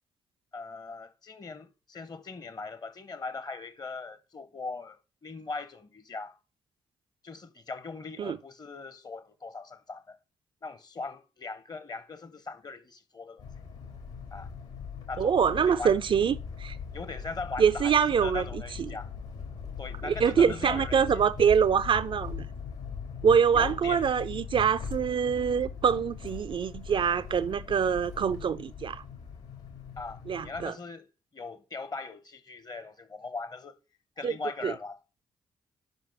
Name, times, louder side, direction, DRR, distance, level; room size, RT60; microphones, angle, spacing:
voice 1, 0.5-6.4 7.2-10.2 10.6-13.5 14.3-14.5 15.1-16.0 16.9-19.1 19.8-21.2 23.5-24.0 30.0-31.1 31.3-33.8 34.2-35.0, left 3 dB, 30° left, 0.8 m, -40 dB
sound 1, 13.4-30.7, left 6 dB, 65° left, 2.0 m, -40 dB
voice 2, 15.2-16.8 17.6-18.4 18.8-18.9 20.0-22.5 23.2-29.0 30.3-30.7 34.2-34.3 34.6-34.7, right 7 dB, 40° right, 0.4 m, -25 dB
5.3 x 5.2 x 5.9 m
figure-of-eight pair, 40°, 13 cm